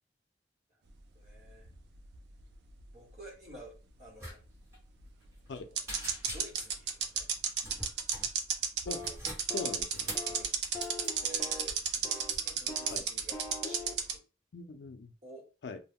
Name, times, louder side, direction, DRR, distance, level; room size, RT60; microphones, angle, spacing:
voice 1, 1.1-1.7 2.9-4.4 6.2-7.3 10.2-10.6 11.1-14.2 15.2-15.5, right 1 dB, 40° right, 1.1 m, -51 dB
sound 1, 1.3-2.8 3.1-3.2 5.0-5.1 5.8-14.1, right 7 dB, 70° right, 0.4 m, -32 dB
sound 2, 4.2-4.4 4.6-4.8 5.2-5.6 5.9-6.8 7.6-8.3 8.9-10.3 10.8-11.1, equal, 15° right, 1.0 m, -43 dB
voice 2, 5.5-5.8 8.9-9.0 9.5-10.1 12.9-13.0 14.5-15.1 15.6-15.8, left 3 dB, 80° left, 0.4 m, -41 dB
sound 3, 8.9-9.2 9.5-9.8 10.1-10.4 10.7-11.7 12.0-12.4 12.7-13.0 13.3-13.9, left 2 dB, 10° left, 0.6 m, -42 dB
2.2 x 2.0 x 3.5 m
head